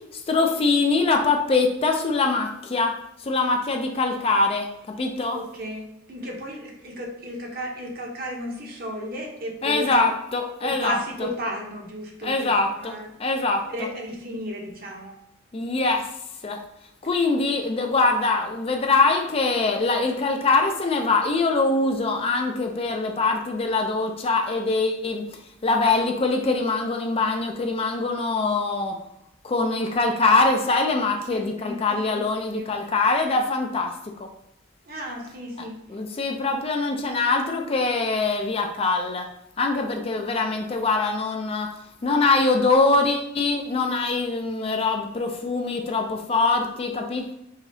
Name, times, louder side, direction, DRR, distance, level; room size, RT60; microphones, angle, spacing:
voice 1, 0.1-2.9 3.2-5.4 9.6-11.0 12.2-12.9 13.2-13.6 15.5-16.0 16.4-16.6 17.0-25.2 25.6-29.0 29.4-34.3 35.9-39.3 39.6-41.7 42.0-47.3, left 3 dB, 30° left, 3 dB, 0.4 m, -23 dB
voice 2, 5.3-10.1 10.7-13.1 13.7-15.2 31.3-32.2 32.5-32.7 34.9-35.8, equal, 50° right, 0 dB, 0.8 m, -34 dB
4.8 x 2.7 x 2.7 m, 0.82 s
head